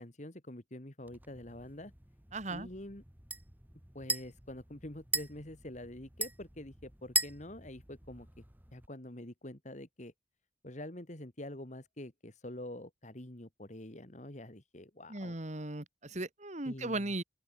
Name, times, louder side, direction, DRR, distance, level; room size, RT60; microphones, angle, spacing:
voice 1, 0.0-1.9 2.5-3.0 3.9-8.4 8.7-10.1 10.6-15.4 16.6-17.1, left 1 dB, 40° left, 2.3 m, -46 dB
sound 1, 1.1-8.9, right 3 dB, 10° right, 1.7 m, -40 dB
voice 2, 2.3-2.7 15.1-17.2, right 2 dB, 40° right, 2.1 m, -37 dB
open air
head